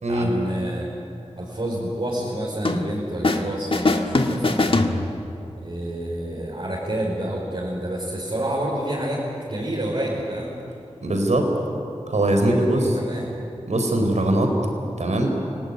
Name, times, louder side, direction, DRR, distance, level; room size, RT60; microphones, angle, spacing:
voice 1, 0.1-0.9 1.3-4.9 5.6-10.5 12.1-13.3, right 1 dB, 55° right, -6 dB, 5.4 m, -29 dB
sound 1, 2.6-3.5 3.7-5.5, left 2 dB, 50° left, 1.8 m, -22 dB
voice 2, 11.0-11.5 12.1-12.9 13.7-14.5 15.0-15.3, right 1 dB, 80° right, 3 dB, 4.4 m, -21 dB
28.5 x 19.0 x 9.6 m, 2.7 s
wide cardioid pair, 70°, 12 cm